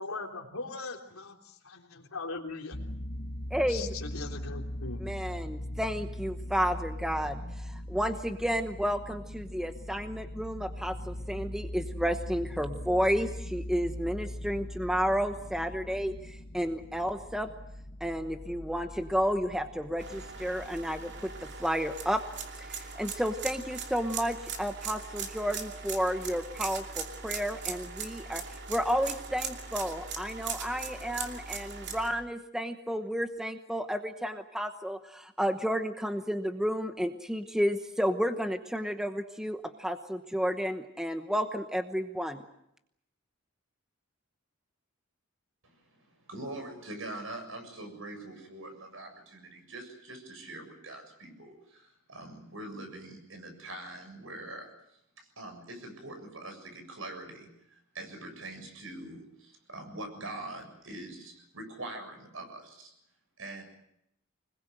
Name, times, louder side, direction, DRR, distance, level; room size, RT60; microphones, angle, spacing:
voice 1, 0.0-1.4 2.1-2.8 3.7-5.1, left 3 dB, 85° left, 2 dB, 3.5 m, -39 dB
sound 1, 2.7-21.5, left 1 dB, 45° left, 1.3 m, -41 dB
voice 2, 3.5-3.9 5.0-17.5 18.0-22.2 22.6-28.4 28.7-42.4, equal, 5° right, 7 dB, 1.0 m, -31 dB
sound 2, 20.0-32.1, right 5 dB, 55° right, 2.8 m, -40 dB
voice 3, 46.3-54.7 55.2-62.9 63.4-63.6, right 2 dB, 70° right, 5 dB, 7.2 m, -43 dB
25.0 x 21.0 x 7.9 m, 0.77 s
head